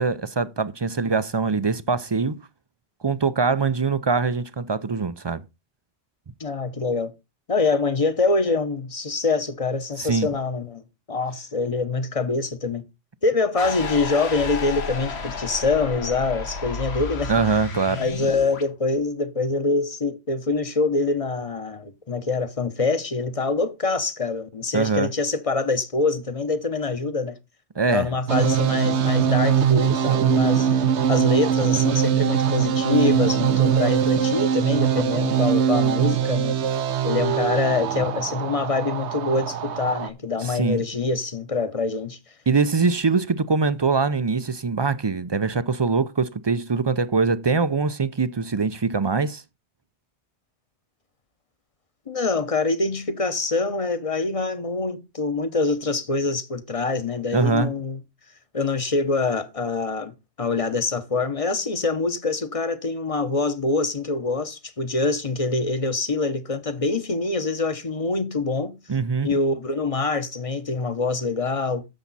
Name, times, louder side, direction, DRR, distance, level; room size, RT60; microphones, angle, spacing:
voice 1, 0.0-2.4 3.0-5.4 10.0-10.3 17.3-18.0 24.7-25.1 27.8-28.1 40.4-40.8 42.5-49.4 57.3-57.7 68.9-69.3, right 4 dB, 40° right, 0.4 m, -23 dB
voice 2, 6.4-7.1 7.5-10.8 11.1-12.9 13.2-17.3 18.0-27.4 27.9-36.6 37.0-42.2 52.1-58.0 58.5-60.1 60.4-68.8 69.2-71.8, left 3 dB, 35° left, 1.0 m, -25 dB
sound 1, 13.6-18.7, left 4 dB, 70° left, 1.5 m, -32 dB
sound 2, 28.3-40.1, right 8 dB, 85° right, 1.1 m, -22 dB
10.5 x 7.1 x 4.1 m
omnidirectional pair, 1.1 m